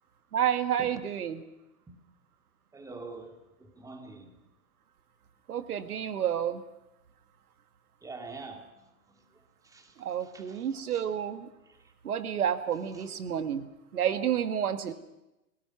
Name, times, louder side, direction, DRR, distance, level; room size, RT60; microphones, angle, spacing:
voice 1, 0.3-1.4 5.5-6.6 10.0-11.5 12.0-13.7 13.9-14.9, right 9 dB, 80° right, 10 dB, 1.8 m, -30 dB
voice 2, 2.7-4.4 8.0-11.1 11.6-11.9 12.9-13.1, right 3 dB, 10° right, 5 dB, 2.2 m, -47 dB
30.0 x 17.5 x 5.9 m, 0.93 s
hypercardioid pair, 140°, 44 cm